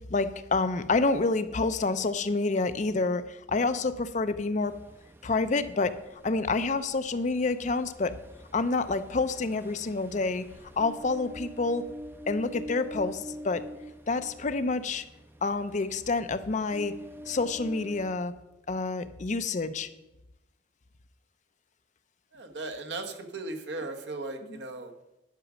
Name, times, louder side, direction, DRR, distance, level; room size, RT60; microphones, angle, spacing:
voice 1, 0.1-4.7 5.2-5.9 6.2-8.1 8.5-10.4 10.8-11.8 12.3-13.6 14.1-15.0 15.4-16.9 17.3-18.3 18.7-19.9 24.4-24.6, left 3 dB, 40° left, 11 dB, 0.5 m, -28 dB
Ocean, 4.6-18.1, equal, 10° right, 0.6 m, -46 dB
voice 2, 22.3-24.9, right 2 dB, 70° right, 4 dB, 1.2 m, -37 dB
11.0 x 6.1 x 6.1 m, 0.94 s
head